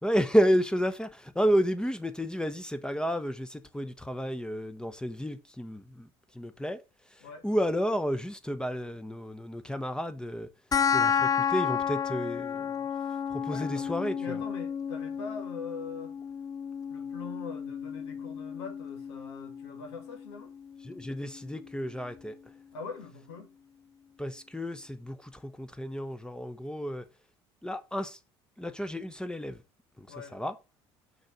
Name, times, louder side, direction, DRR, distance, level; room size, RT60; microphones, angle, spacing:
voice 1, 0.0-6.1 6.3-6.8 7.4-10.5 10.9-12.7 13.3-14.4 20.8-22.3 24.2-27.0 27.6-28.2 28.6-29.6 30.0-30.1 30.3-30.5, equal, 5° left, 0.9 m, -31 dB
sound 1, 10.7-21.7, left 7 dB, 25° left, 0.4 m, -32 dB
voice 2, 13.5-16.1 16.9-20.5 22.7-23.5 30.1-30.4, left 5 dB, 80° left, 1.8 m, -43 dB
6.3 x 4.8 x 5.1 m
hypercardioid pair, 65°, 14 cm